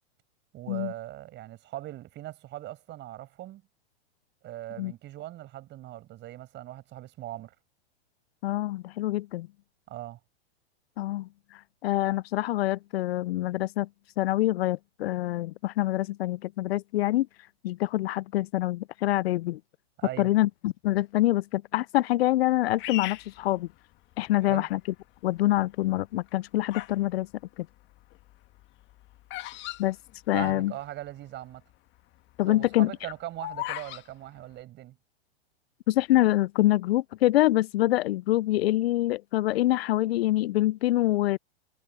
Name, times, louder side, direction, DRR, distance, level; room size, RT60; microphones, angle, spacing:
voice 1, 0.5-3.6 4.4-7.5 9.9-10.2 20.0-20.3 24.4-24.7 30.3-31.6 32.5-35.0, right 14 dB, 35° right, 7.2 m, -40 dB
voice 2, 8.4-9.5 11.0-11.3 11.8-13.9 14.2-17.3 17.6-19.6 20.2-23.7 24.2-24.8 25.2-27.3 29.8-30.0 30.3-30.7 32.4-32.9 35.9-41.4, left 16 dB, 65° left, 0.5 m, -25 dB
Bird vocalization bird call bird song, 22.8-24.3 24.9-25.4 26.1-27.0 27.3-30.8 31.1-31.2 31.3-31.7 32.1-34.0, left 17 dB, 35° left, 1.9 m, -38 dB
hypercardioid pair, 125°, 33 cm